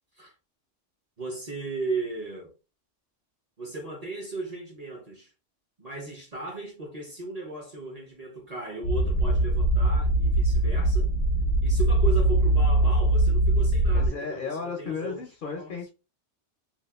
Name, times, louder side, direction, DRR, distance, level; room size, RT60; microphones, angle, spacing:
voice 1, 1.2-2.5 3.6-5.3 5.8-11.1 11.6-15.2 15.5-15.8, right 3 dB, 40° right, 0.6 m, -36 dB
sound 1, 8.8-14.1, right 1 dB, 80° left, 0.9 m, -22 dB
voice 2, 13.9-15.9, left 5 dB, 60° left, 0.6 m, -34 dB
2.7 x 2.2 x 2.2 m
omnidirectional pair, 1.2 m